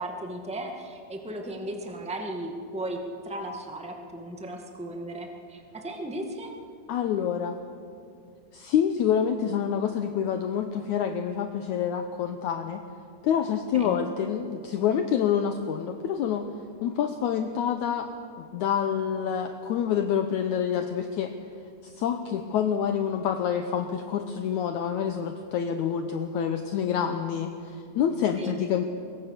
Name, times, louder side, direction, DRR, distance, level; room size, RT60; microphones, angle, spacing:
voice 1, 0.0-3.0 3.2-6.5 13.7-14.0 28.4-28.6, right 1 dB, 10° right, 2 dB, 0.3 m, -36 dB
voice 2, 6.9-7.6 8.5-12.8 13.2-16.5 16.8-18.1 18.5-21.3 21.8-28.8, left 8 dB, 75° left, 6 dB, 1.8 m, -27 dB
24.0 x 22.0 x 6.8 m, 2.5 s
omnidirectional pair, 4.4 m